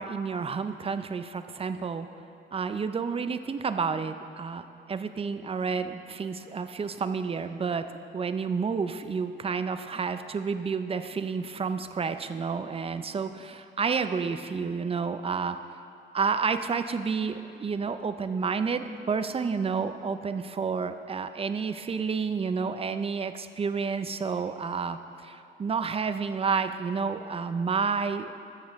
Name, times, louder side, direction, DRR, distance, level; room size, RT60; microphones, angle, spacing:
voice 1, 0.0-2.1 2.5-7.9 8.1-15.6 16.1-28.3, right 5 dB, 30° right, 10 dB, 0.5 m, -30 dB
13.0 x 7.3 x 3.5 m, 2.7 s
cardioid pair, 90°, 20 cm